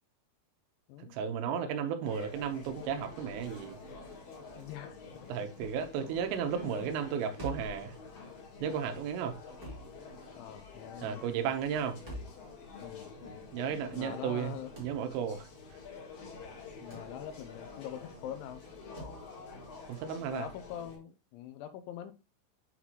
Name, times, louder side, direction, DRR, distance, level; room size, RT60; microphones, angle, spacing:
voice 1, 1.1-3.8 5.3-7.9 8.6-9.4 11.0-12.0 13.5-14.5 14.8-15.5 19.9-20.5, right 7 dB, 85° right, 3.5 m, -34 dB
sound 1, 2.0-21.0, left 4 dB, 55° left, 3.3 m, -48 dB
voice 2, 4.6-5.3 6.5-7.0 9.5-9.6 10.4-11.5 12.8-13.1 13.9-14.7 16.8-18.6 20.3-22.1, left 11 dB, 80° left, 2.9 m, -44 dB
sound 2, 7.4-7.8 9.6-9.9 12.1-12.4 14.8-15.0 16.9-17.1 19.0-19.2, equal, 40° right, 0.7 m, -43 dB
8.4 x 4.2 x 2.9 m
omnidirectional pair, 5.6 m